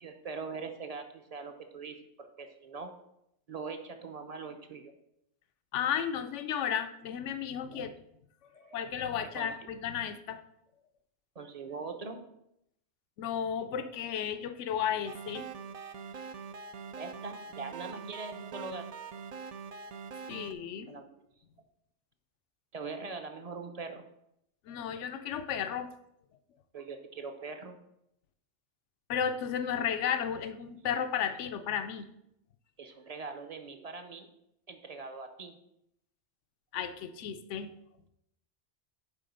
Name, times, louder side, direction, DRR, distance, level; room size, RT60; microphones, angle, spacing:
voice 1, 0.0-2.9 3.5-4.9 7.7-7.9 8.5-8.8 9.3-9.7 11.3-12.2 16.1-16.3 17.0-18.9 20.9-21.2 22.7-24.1 26.7-27.8 32.8-34.3 34.7-35.6, right 4 dB, 40° right, 6 dB, 0.7 m, -42 dB
voice 2, 5.7-7.9 8.7-10.4 13.2-15.4 20.3-21.0 24.7-25.9 29.1-32.0 36.7-37.7, left 8 dB, 85° left, 10 dB, 0.9 m, -33 dB
sound 1, 15.1-20.5, right 6 dB, 60° right, 0.4 m, -43 dB
9.1 x 3.8 x 5.3 m, 0.78 s
omnidirectional pair, 1.2 m